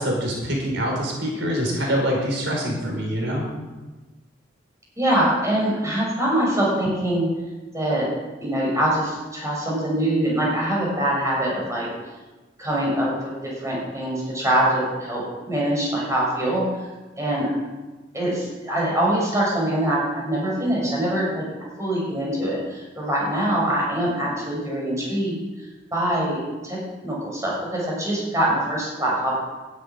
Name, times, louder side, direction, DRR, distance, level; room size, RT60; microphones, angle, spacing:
voice 1, 0.0-3.5, equal, 75° right, -1 dB, 4.7 m, -25 dB
voice 2, 5.0-7.3 7.7-8.1 8.4-11.9 12.6-16.6 17.2-17.5 18.1-21.5 21.8-25.4 25.9-29.4, right 1 dB, 15° right, -4 dB, 6.7 m, -24 dB
12.5 x 9.7 x 9.9 m, 1.2 s
head